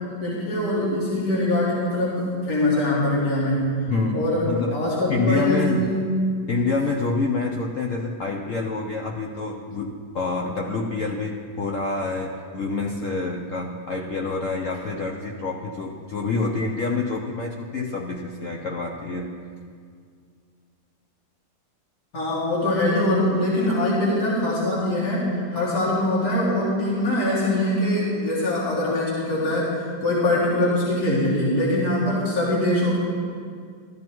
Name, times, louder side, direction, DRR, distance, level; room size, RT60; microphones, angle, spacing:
voice 1, 0.2-3.8 4.1-6.1 22.1-29.7 30.0-33.0, left 1 dB, 50° left, -7 dB, 2.9 m, -23 dB
voice 2, 3.9-6.0 6.5-19.4, left 3 dB, 65° left, 1 dB, 0.8 m, -27 dB
15.0 x 13.0 x 3.0 m, 2.1 s
omnidirectional pair, 2.1 m